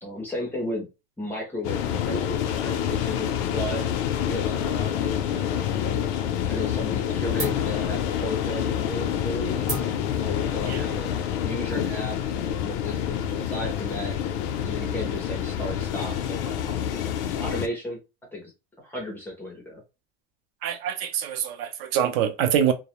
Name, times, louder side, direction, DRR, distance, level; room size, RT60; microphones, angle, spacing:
voice 1, 0.0-0.9 1.2-3.9 4.2-6.0 6.5-9.7 10.2-11.1 11.4-14.2 14.6-17.0 17.3-18.0 18.3-18.5 18.8-19.8, left 1 dB, 5° left, 0.4 m, -34 dB
sound 1, 1.6-17.7, left 9 dB, 85° left, 0.5 m, -27 dB
sound 2, 5.5-6.3 6.6-7.0 7.4-12.5, right 1 dB, 25° right, 0.8 m, -39 dB
voice 2, 20.6-22.7, right 9 dB, 70° right, 0.6 m, -25 dB
2.3 x 2.0 x 2.9 m
cardioid pair, 175°, 30 cm